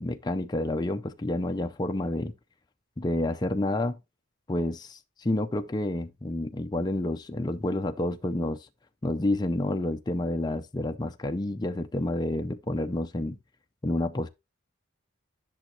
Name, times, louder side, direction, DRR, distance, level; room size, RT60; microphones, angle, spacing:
voice 1, 0.0-2.3 3.0-4.0 4.5-8.7 9.0-13.4 13.8-14.3, left 1 dB, 20° left, 0.5 m, -29 dB
11.0 x 6.3 x 2.7 m
head